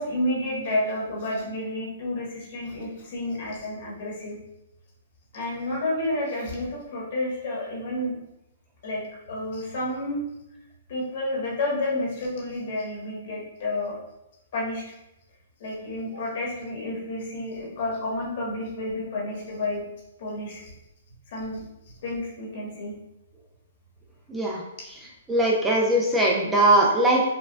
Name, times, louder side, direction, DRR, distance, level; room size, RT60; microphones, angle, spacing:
voice 1, 0.0-4.3 5.3-8.1 8.8-9.0 9.3-10.2 10.9-14.0 14.5-14.9 15.6-19.9 20.2-20.7 21.3-21.6 22.0-22.9, left 1 dB, 55° left, -4 dB, 1.4 m, -30 dB
voice 2, 24.3-24.6 25.3-27.2, right 1 dB, 10° right, -2 dB, 0.5 m, -20 dB
4.3 x 2.3 x 2.3 m, 0.88 s
hypercardioid pair, 145°, 0 cm